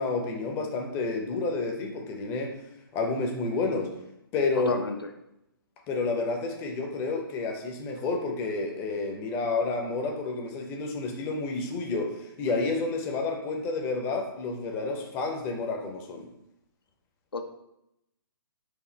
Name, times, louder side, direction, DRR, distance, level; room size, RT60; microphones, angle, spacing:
voice 1, 0.0-2.6 2.9-3.9 4.3-4.7 5.9-16.3, left 3 dB, 20° left, 3 dB, 0.6 m, -30 dB
voice 2, 4.6-5.0 12.5-12.6 17.3-17.4, left 4 dB, 80° left, 6 dB, 0.6 m, -31 dB
4.8 x 2.5 x 4.3 m, 0.85 s
figure-of-eight pair, 130°, 12 cm